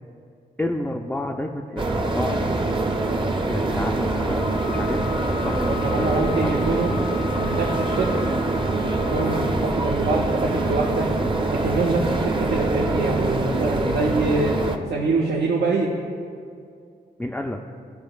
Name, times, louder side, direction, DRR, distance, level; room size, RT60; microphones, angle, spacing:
voice 1, 0.6-2.4 3.5-5.1 5.4-7.0 17.2-17.6, left 1 dB, 5° left, 1 dB, 0.4 m, -30 dB
sound 1, 1.8-14.8, right 2 dB, 30° right, 0.6 m, -24 dB
Wind instrument woodwind instrument, 4.4-9.6, left 17 dB, 70° left, 0.8 m, -37 dB
voice 2, 5.6-6.9 7.4-8.1 8.7-11.1 11.5-14.6 14.9-15.9, right 3 dB, 75° right, -2 dB, 0.6 m, -25 dB
13.0 x 4.3 x 2.4 m, 2.3 s
cardioid pair, 55°, 18 cm